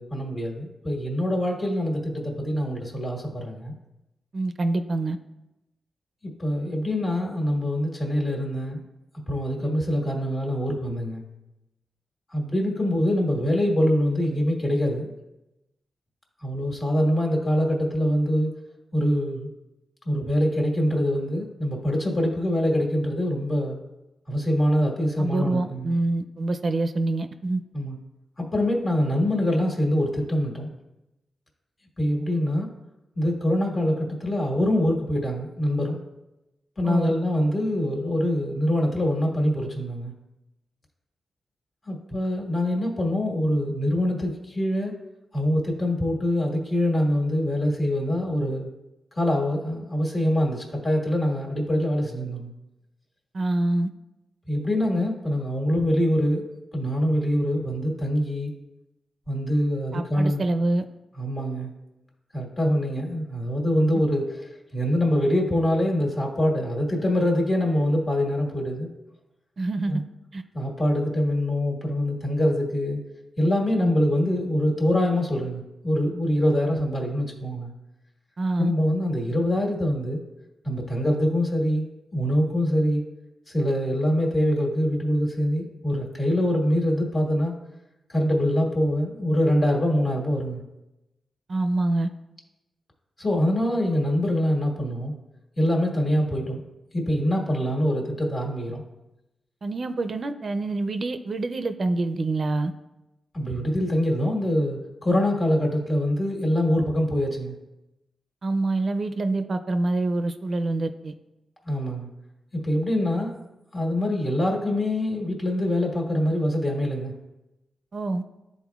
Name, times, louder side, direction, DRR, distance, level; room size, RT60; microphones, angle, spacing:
voice 1, 0.0-3.7 6.4-8.8 9.3-11.2 12.3-15.1 16.4-18.5 18.9-19.5 20.0-23.8 24.3-26.0 27.7-28.0 28.4-30.7 32.0-32.7 33.1-36.0 36.8-40.1 41.8-44.9 45.3-48.7 49.1-52.5 54.5-56.4 56.7-58.5 59.3-60.5 61.2-61.7 62.3-64.4 64.7-68.9 69.9-70.0 70.5-73.0 73.4-77.7 78.6-80.2 80.6-81.8 82.1-83.0 83.5-87.6 88.1-90.6 93.2-95.1 95.6-96.6 96.9-98.8 103.3-107.5 111.6-112.1 112.5-113.4 113.7-117.1, left 1 dB, 40° left, -1 dB, 1.7 m, -24 dB
voice 2, 4.3-5.2 25.2-27.6 36.8-37.1 53.3-53.9 59.9-60.8 69.6-70.0 70.3-70.4 78.4-78.7 91.5-92.1 99.6-102.7 108.4-111.1 117.9-118.2, right 2 dB, 50° right, 8 dB, 0.4 m, -26 dB
12.0 x 4.1 x 2.3 m, 0.96 s
cardioid pair, 95°, 0 cm